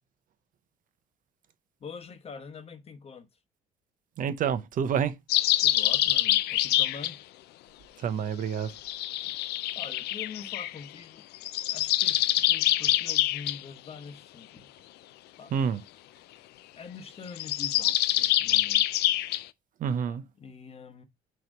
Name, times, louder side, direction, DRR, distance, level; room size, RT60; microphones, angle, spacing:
voice 1, 1.8-3.3 5.6-7.2 9.7-11.2 11.6-14.7 15.4-15.5 16.8-18.9 20.1-21.0, left 5 dB, 35° left, 1.0 m, -44 dB
voice 2, 4.2-5.1 8.0-8.7 15.5-15.8 19.8-20.2, right 7 dB, 50° right, 0.7 m, -28 dB
sound 1, 5.3-7.1 8.8-10.7 11.3-13.6 17.3-19.4, left 15 dB, 75° left, 0.4 m, -25 dB
6.2 x 3.0 x 5.2 m
cardioid pair, 110°, 17 cm